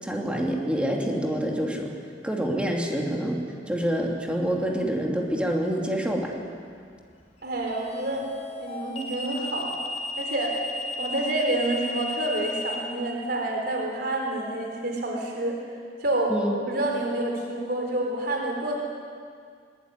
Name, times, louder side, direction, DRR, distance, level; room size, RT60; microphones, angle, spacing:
voice 1, 0.0-2.0 2.2-3.4 3.7-6.3 16.3-16.5, equal, 5° right, -1 dB, 2.8 m, -27 dB
sound 1, 4.4-4.7 7.7-12.8, left 2 dB, 35° left, 4.6 m, -34 dB
voice 2, 7.4-8.3 8.6-9.8 10.2-10.6 11.0-15.6 16.0-16.3 16.7-18.7, right 1 dB, 60° right, 1 dB, 3.9 m, -28 dB
21.5 x 21.5 x 9.7 m, 2.2 s
head